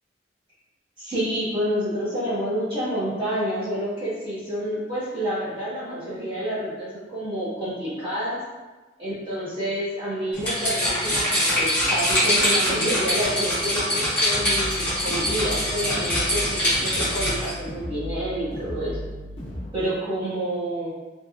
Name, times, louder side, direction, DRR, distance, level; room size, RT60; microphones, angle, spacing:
voice 1, 1.0-8.4 9.0-19.0 19.7-20.9, equal, 30° right, -11 dB, 1.4 m, -28 dB
sound 1, 10.3-17.5, equal, 10° left, 1.4 m, -23 dB
sound 2, 14.4-19.7, left 1 dB, 35° left, 0.6 m, -35 dB
3.4 x 2.8 x 2.5 m, 1.3 s
head